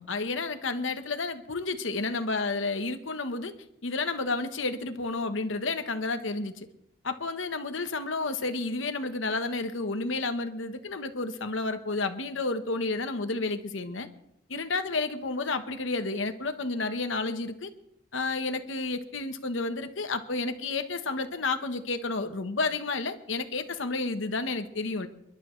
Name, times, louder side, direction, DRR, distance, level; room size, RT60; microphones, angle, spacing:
voice 1, 0.0-3.5 3.8-6.7 7.0-14.1 14.5-17.7 18.1-25.1, left 3 dB, 85° left, 8 dB, 1.1 m, -31 dB
29.0 x 11.5 x 3.2 m, 0.80 s
head